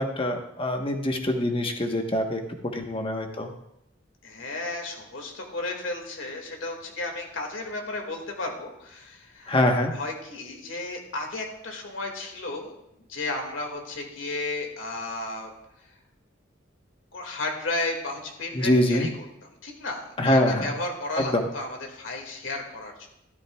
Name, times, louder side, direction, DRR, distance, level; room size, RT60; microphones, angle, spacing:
voice 1, 0.0-2.4 2.7-3.5 9.5-9.9 18.5-19.1 20.2-20.7 21.2-21.5, left 1 dB, 30° left, 4 dB, 1.2 m, -24 dB
voice 2, 4.2-9.5 9.9-12.7 13.1-15.5 17.1-19.1 19.6-23.1, left 2 dB, 80° left, 2 dB, 2.1 m, -33 dB
13.0 x 12.5 x 2.4 m, 0.83 s
head